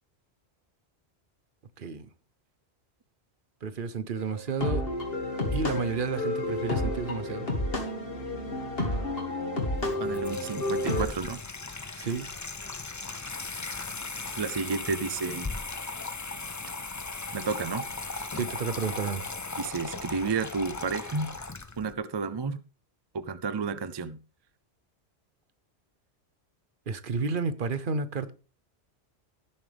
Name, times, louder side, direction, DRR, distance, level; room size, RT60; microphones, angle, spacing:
voice 1, 3.6-4.8 5.5-7.5 12.0-12.3 18.3-19.2 26.9-28.3, right 4 dB, 55° right, 1.0 m, -31 dB
sound 1, 4.1-11.0, left 1 dB, 60° left, 2.5 m, -30 dB
Water tap faucet / Sink (filling or washing), 9.7-21.9, left 3 dB, 25° left, 0.4 m, -38 dB
voice 2, 10.0-11.4 14.3-15.5 17.3-17.8 19.6-21.3 21.8-22.6 23.1-24.2, right 4 dB, 40° right, 0.4 m, -31 dB
16.5 x 7.3 x 3.4 m
omnidirectional pair, 1.1 m